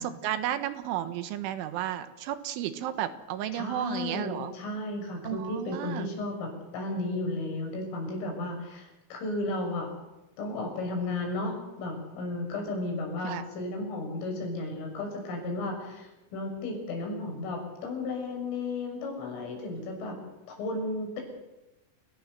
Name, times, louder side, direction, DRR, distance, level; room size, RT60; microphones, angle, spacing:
voice 1, 0.0-4.5 5.3-6.1 13.2-13.4, right 11 dB, 80° right, 10 dB, 3.7 m, -33 dB
voice 2, 3.5-9.9 10.4-20.2 20.5-21.2, left 2 dB, 90° left, 2 dB, 8.9 m, -34 dB
28.5 x 18.0 x 8.0 m, 0.99 s
omnidirectional pair, 5.6 m